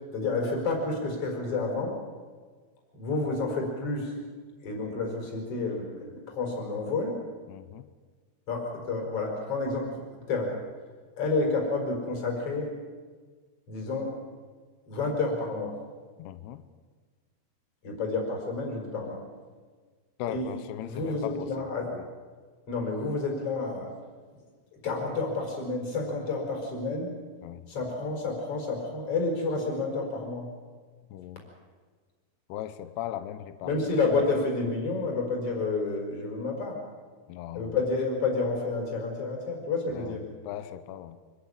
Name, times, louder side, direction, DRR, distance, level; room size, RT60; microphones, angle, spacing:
voice 1, 0.1-2.0 2.9-4.1 4.6-7.2 8.5-10.6 11.2-12.7 13.7-14.2 14.9-15.8 17.8-19.2 20.3-22.0 22.7-23.9 24.8-27.1 27.7-30.5 33.6-36.8 37.5-40.2, left 3 dB, 30° left, 1 dB, 5.2 m, -30 dB
voice 2, 7.5-7.9 16.2-16.6 20.2-21.6 21.9-22.0 27.4-27.7 31.1-31.4 32.5-33.7 37.3-37.7 39.9-40.2 40.4-41.2, left 11 dB, 75° left, 12 dB, 2.6 m, -38 dB
25.0 x 13.5 x 9.7 m, 1.5 s
omnidirectional pair, 5.4 m